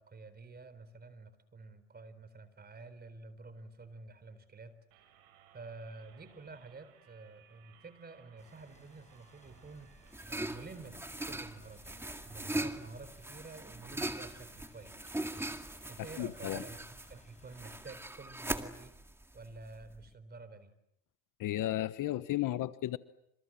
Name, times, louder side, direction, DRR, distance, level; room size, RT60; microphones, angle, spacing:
voice 1, 0.0-5.1 5.5-9.9 10.2-15.0 15.9-18.9 19.3-20.7, right 3 dB, 25° right, 14 dB, 4.2 m, -50 dB
sound 1, 4.9-10.8, right 9 dB, 80° right, 7.4 m, -63 dB
sound 2, 8.4-17.9, left 3 dB, 15° left, 7.0 m, -64 dB
sound 3, 9.5-20.1, right 1 dB, 5° right, 2.1 m, -41 dB
voice 2, 16.2-16.6 21.4-23.0, left 14 dB, 50° left, 14 dB, 1.2 m, -33 dB
28.0 x 27.5 x 7.6 m, 0.77 s
supercardioid pair, 110°, 41 cm